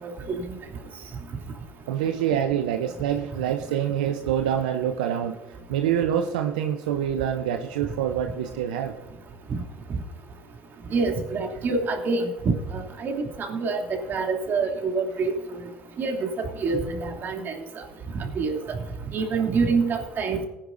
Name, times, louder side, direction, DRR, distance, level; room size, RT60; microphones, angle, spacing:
voice 1, 0.0-0.4 10.9-15.3 16.0-16.3 16.6-17.5 18.3-18.8 19.1-20.4, right 4 dB, 50° right, 2 dB, 2.8 m, -26 dB
voice 2, 1.9-8.9, right 9 dB, 90° right, 5 dB, 0.7 m, -26 dB
18.5 x 10.0 x 2.6 m, 1.1 s
hypercardioid pair, 70°, 4 cm